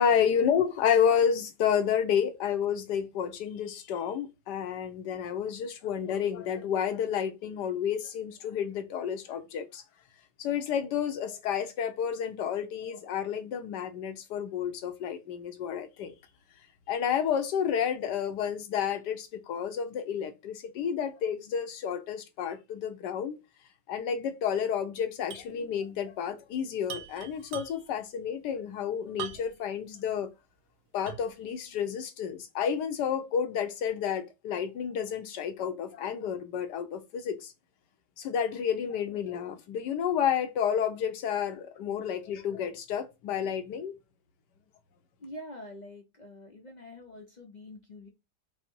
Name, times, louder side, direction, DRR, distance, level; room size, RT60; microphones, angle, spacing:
voice 1, 0.0-9.8 10.4-16.2 16.9-23.4 23.9-30.3 30.9-37.5 38.2-43.9, left 8 dB, 85° left, 1.4 m, -30 dB
sound 1, 25.3-25.6 25.8-25.9 26.8-28.0 29.2-29.7 30.2-30.3 31.1-31.4, right 9 dB, 75° right, 1.2 m, -41 dB
voice 2, 45.2-48.1, left 1 dB, 60° left, 0.4 m, -45 dB
5.7 x 2.0 x 4.4 m
omnidirectional pair, 1.8 m